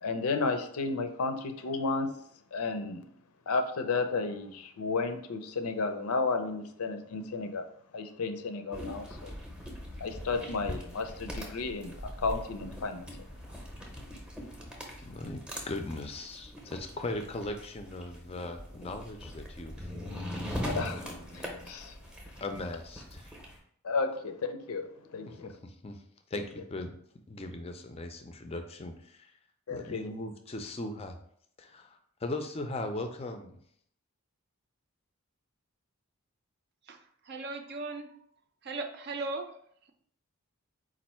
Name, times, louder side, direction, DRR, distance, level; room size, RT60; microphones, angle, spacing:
voice 1, 0.0-2.1 2.5-3.0 3.5-7.7 7.9-9.1 10.0-13.1 20.6-21.0 21.3-21.9 23.8-25.5 29.7-30.0, left 4 dB, 85° left, 7 dB, 0.5 m, -32 dB
sound 1, 8.7-23.6, equal, 5° right, 0.7 m, -41 dB
voice 2, 15.1-15.4 15.7-20.5 22.4-23.3 25.3-26.0 26.3-26.9 27.3-29.3 29.7-31.2 31.6-33.6, left 2 dB, 25° left, 6 dB, 0.4 m, -39 dB
voice 3, 37.3-38.2 38.6-39.5, right 3 dB, 50° right, 6 dB, 0.4 m, -37 dB
4.3 x 2.5 x 4.3 m, 0.67 s
head